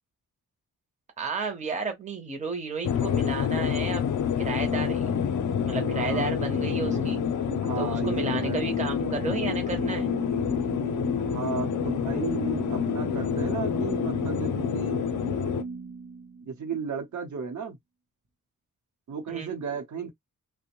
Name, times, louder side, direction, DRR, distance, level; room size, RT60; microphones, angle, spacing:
voice 1, 1.2-4.1 4.4-5.2 5.7-7.2 7.8-10.1 19.3-19.5, right 4 dB, 20° right, 0.7 m, -33 dB
sound 1, 2.8-15.6, left 8 dB, 65° left, 0.5 m, -28 dB
voice 2, 4.6-4.9 5.9-6.3 7.6-8.6 11.2-15.0 16.4-17.8 19.1-20.1, right 5 dB, 60° right, 0.8 m, -34 dB
sound 2, 4.7-16.8, right 5 dB, 90° right, 0.7 m, -37 dB
2.5 x 2.1 x 3.0 m
wide cardioid pair, 145°, 33 cm